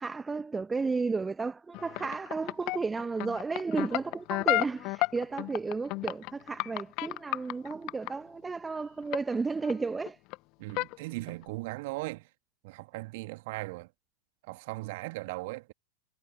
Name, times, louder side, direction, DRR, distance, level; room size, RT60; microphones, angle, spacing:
voice 1, 0.0-10.2, right 4 dB, 10° right, 1.3 m, -33 dB
sound 1, 1.7-8.1 9.1-9.4 9.6-10.4 10.7-11.0 11.3-11.5, left 25 dB, 40° left, 0.9 m, -32 dB
voice 2, 10.6-12.3 12.6-13.9 14.5-15.7, right 23 dB, 50° right, 2.2 m, -38 dB
figure-of-eight pair, 90°, 0 cm